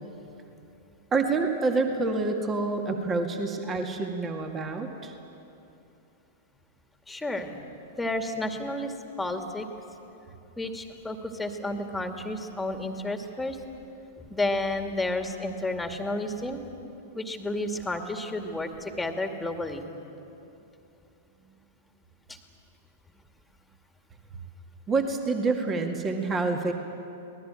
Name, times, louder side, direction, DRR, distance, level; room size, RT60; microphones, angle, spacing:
voice 1, 1.1-5.1 24.9-26.7, right 3 dB, 20° right, 4 dB, 2.1 m, -27 dB
voice 2, 7.1-7.6 8.0-9.7 10.6-13.6 14.3-16.6 17.1-19.8 22.3-22.4, left 2 dB, 5° left, 5 dB, 2.3 m, -31 dB
25.5 x 19.0 x 9.0 m, 2.9 s
figure-of-eight pair, 100°, 0 cm